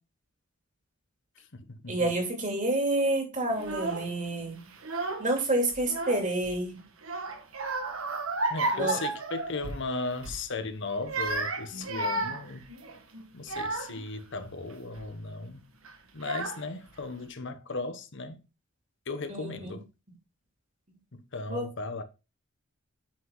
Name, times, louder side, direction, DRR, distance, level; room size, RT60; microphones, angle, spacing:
voice 1, 1.4-2.1 8.5-12.7 13.3-15.7 16.1-18.4 19.1-19.9 21.1-22.0, left 3 dB, 60° left, 1.1 m, -36 dB
voice 2, 1.9-4.6 5.2-6.8 8.7-9.0 19.3-19.7 21.5-21.7, right 1 dB, 40° right, 2.8 m, -28 dB
Child speech kid speaking / Crying sobbing, 3.6-4.1 4.7-5.4 5.7-6.5 7.0-9.9 10.2-10.4 10.9-14.1 14.7-15.1 15.8-15.9 16.2-16.9, right 2 dB, 85° right, 1.5 m, -33 dB
8.6 x 5.8 x 3.8 m
head